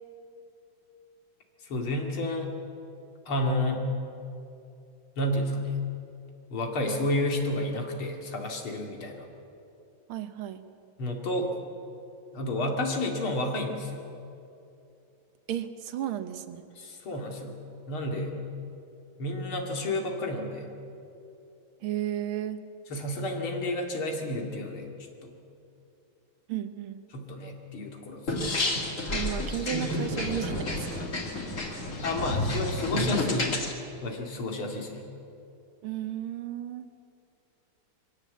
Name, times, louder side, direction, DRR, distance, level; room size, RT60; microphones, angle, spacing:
voice 1, 1.6-2.6 3.3-3.9 5.2-5.8 6.5-9.3 11.0-11.5 12.3-14.0 16.8-18.3 19.2-20.7 22.9-24.9 25.2-25.4 27.1-28.3 32.0-33.5 34.0-35.1, left 1 dB, 90° left, 2 dB, 3.1 m, -31 dB
voice 2, 10.1-10.6 15.5-16.6 21.8-22.6 26.5-27.0 29.1-31.0 35.8-36.9, right 11 dB, 85° right, 10 dB, 1.9 m, -34 dB
sound 1, 28.3-33.7, left 1 dB, 40° left, 2.2 m, -30 dB
22.5 x 17.0 x 8.3 m, 2.7 s
omnidirectional pair, 2.3 m